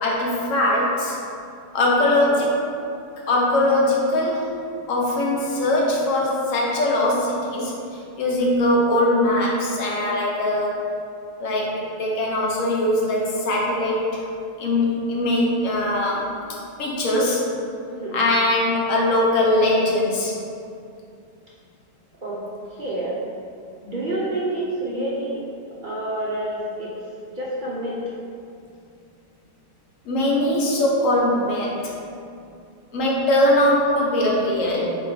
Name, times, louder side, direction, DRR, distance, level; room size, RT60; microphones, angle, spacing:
voice 1, 0.0-1.2 1.7-2.6 3.3-4.5 4.9-7.7 8.2-10.8 11.4-14.2 14.6-16.3 16.8-17.4 18.1-20.3 30.1-31.9 32.9-34.8, left 1 dB, 75° left, -3 dB, 1.2 m, -21 dB
voice 2, 1.8-2.1 17.9-18.2 22.2-22.4 22.7-23.2 23.8-25.5 25.8-28.0, right 1 dB, 50° right, -6 dB, 0.6 m, -28 dB
3.8 x 3.1 x 4.1 m, 2.5 s
omnidirectional pair, 1.4 m